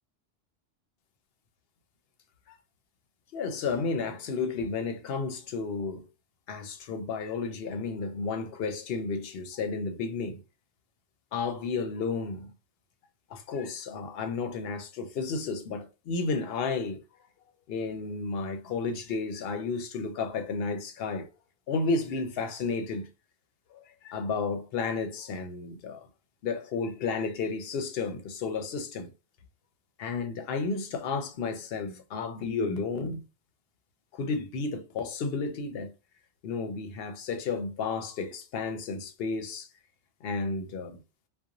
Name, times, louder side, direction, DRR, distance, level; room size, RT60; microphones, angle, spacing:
voice 1, 3.3-6.0 6.5-10.4 11.3-12.5 13.3-17.0 17.7-21.3 21.7-23.1 23.7-26.0 26.4-29.1 30.0-33.2 34.1-35.9 36.4-39.7 40.2-41.0, left 4 dB, 70° left, 0.7 m, -32 dB
2.5 x 2.1 x 2.8 m
omnidirectional pair, 1.1 m